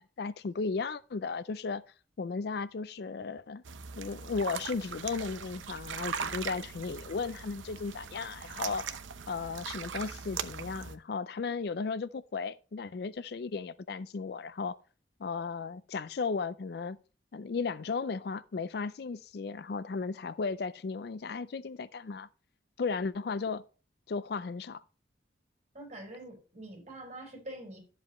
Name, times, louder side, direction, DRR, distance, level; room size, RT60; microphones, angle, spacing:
voice 1, 0.0-1.8 2.2-3.6 4.0-8.9 9.3-14.8 15.2-17.0 17.3-22.3 22.8-23.6 24.1-24.8, left 4 dB, 55° left, 0.4 m, -35 dB
sound 1, 3.6-10.9, right 6 dB, 85° right, 0.8 m, -40 dB
voice 2, 25.7-27.8, right 1 dB, 35° right, 4.5 m, -45 dB
13.0 x 7.6 x 3.0 m
head